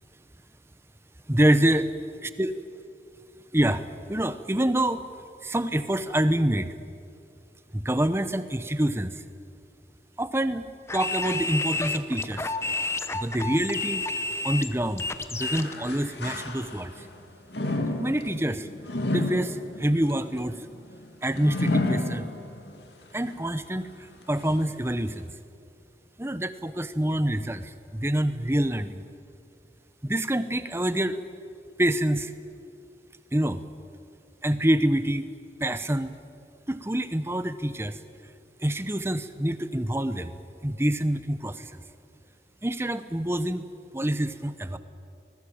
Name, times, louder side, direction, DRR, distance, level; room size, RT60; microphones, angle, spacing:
voice 1, 1.3-1.9 2.2-2.5 3.5-5.0 5.4-6.7 7.7-9.2 10.2-10.7 10.9-12.5 13.1-17.1 18.0-18.7 19.1-20.5 21.2-22.3 23.1-23.9 24.3-25.3 26.2-29.0 30.0-31.2 31.8-32.3 33.3-33.6 34.4-35.3 35.6-36.1 36.7-38.0 38.6-40.3 40.6-41.8 42.6-43.7 43.9-44.8, right 1 dB, 15° right, 12 dB, 0.9 m, -26 dB
sound 1, 10.9-15.7, left 3 dB, 15° left, 0.9 m, -30 dB
sound 2, 15.5-17.0 17.5-22.8 23.3-23.4 24.2-24.3, left 1 dB, 75° left, 2.3 m, -31 dB
25.0 x 20.0 x 8.7 m, 2.4 s
head